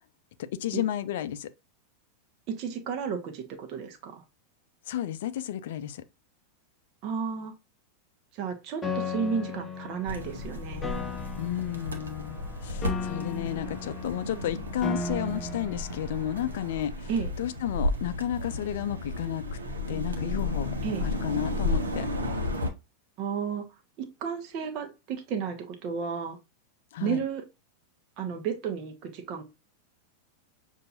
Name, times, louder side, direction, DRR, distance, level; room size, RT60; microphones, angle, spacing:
voice 1, 0.4-1.5 4.9-6.0 11.4-17.1 17.4-19.4 19.9-20.7 21.0-22.1 26.9-27.2, left 11 dB, 55° left, 0.4 m, -32 dB
voice 2, 2.5-4.2 7.0-7.5 8.3-11.0 17.1-17.3 20.8-21.0 23.2-23.6 24.0-26.4 27.0-27.4 28.2-29.4, right 6 dB, 40° right, 1.0 m, -32 dB
Piano, 8.8-16.8, left 4 dB, 15° left, 0.6 m, -37 dB
sound 1, 10.1-22.7, left 2 dB, 75° right, 0.9 m, -33 dB
6.6 x 2.7 x 2.6 m
figure-of-eight pair, 90°, 0 cm